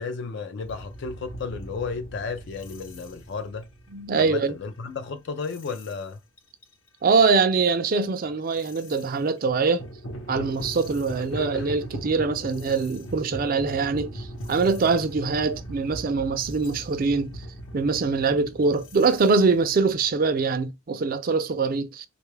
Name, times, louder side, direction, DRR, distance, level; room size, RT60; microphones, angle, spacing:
voice 1, 0.0-3.7 4.1-6.2 11.4-11.7, left 5 dB, 55° left, 0.4 m, -33 dB
sound 1, 0.6-4.9 5.4-6.0 6.4-6.7 7.2-9.1 9.6-20.4, equal, 80° left, 0.9 m, -40 dB
voice 2, 3.9-4.6 7.0-9.8 10.3-17.3 17.7-22.1, right 4 dB, 45° right, 0.4 m, -23 dB
3.4 x 2.3 x 3.2 m
head